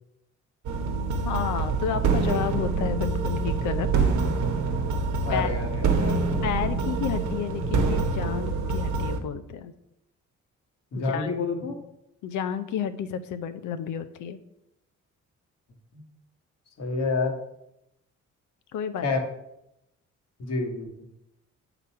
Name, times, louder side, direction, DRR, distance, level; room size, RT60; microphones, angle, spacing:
sound 1, 0.6-9.2, right 4 dB, 70° right, 1.0 m, -26 dB
voice 1, 1.2-3.9 5.3-5.5 6.4-9.7 10.9-11.3 12.2-14.4 18.7-19.1, left 8 dB, 80° left, 10 dB, 0.7 m, -31 dB
voice 2, 5.2-6.3 10.9-11.8 15.9-16.0 16.8-17.3 19.0-19.2 20.4-20.9, left 3 dB, 60° left, 2 dB, 1.5 m, -28 dB
7.4 x 4.0 x 5.6 m, 0.82 s
cardioid pair, 90°, 30 cm